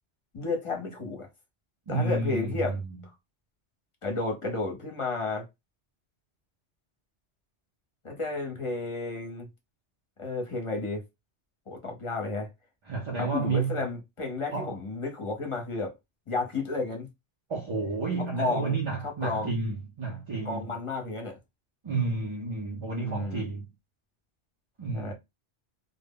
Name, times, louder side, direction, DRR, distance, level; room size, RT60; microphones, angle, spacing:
voice 1, 0.3-1.3 1.9-2.8 4.0-5.4 8.0-9.5 10.2-11.0 11.7-12.5 13.2-15.9 16.3-17.1 18.2-18.8 19.0-19.5 20.5-21.4 23.0-23.4 24.9-25.1, left 3 dB, 35° left, 0.7 m, -32 dB
voice 2, 1.9-3.0 12.9-13.8 14.5-14.8 17.5-20.7 21.8-23.7 24.8-25.1, right 3 dB, 40° right, 0.4 m, -31 dB
2.1 x 2.0 x 3.5 m
omnidirectional pair, 1.1 m